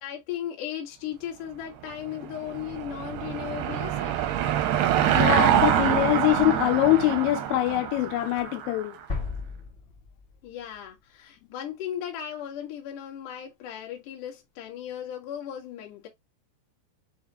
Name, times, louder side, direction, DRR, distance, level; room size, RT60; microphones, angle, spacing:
voice 1, 0.0-4.1 10.4-16.1, left 10 dB, 60° left, 2.3 m, -36 dB
Car passing by / Engine, 2.0-8.8, right 11 dB, 80° right, 2.3 m, -25 dB
voice 2, 5.1-9.0, left 16 dB, 85° left, 2.9 m, -23 dB
sound 1, 9.1-11.0, left 4 dB, 40° left, 0.6 m, -35 dB
7.1 x 2.4 x 2.8 m
omnidirectional pair, 5.2 m